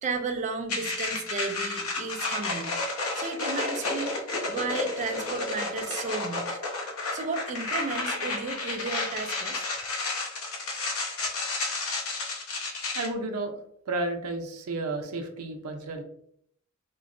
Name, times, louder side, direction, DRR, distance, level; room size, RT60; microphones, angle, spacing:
voice 1, 0.0-2.8 3.1-4.2 4.5-6.6 7.1-9.6, right 3 dB, 35° right, 5 dB, 0.4 m, -33 dB
sound 1, 0.7-13.1, left 3 dB, 80° left, 0.8 m, -31 dB
voice 2, 12.9-13.6 13.9-16.0, right 2 dB, 85° right, 4 dB, 0.5 m, -32 dB
3.8 x 2.0 x 2.5 m, 0.68 s
head